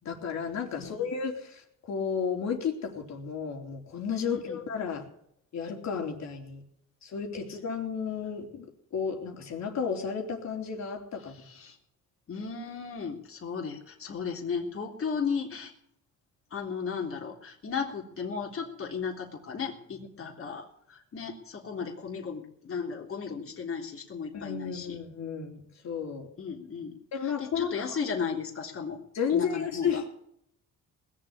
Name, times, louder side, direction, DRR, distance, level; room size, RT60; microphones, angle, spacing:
voice 1, 0.0-5.0 5.5-6.6 7.0-11.4 24.3-26.3 27.1-28.0 29.1-30.0, left 6 dB, 65° left, 2 dB, 3.8 m, -33 dB
voice 2, 0.8-1.1 4.2-4.6 11.2-11.8 12.3-15.7 16.5-25.0 26.4-29.0 29.3-30.0, left 6 dB, 45° left, 0 dB, 3.5 m, -35 dB
20.0 x 7.5 x 8.6 m, 0.72 s
cardioid pair, 90°, 30 cm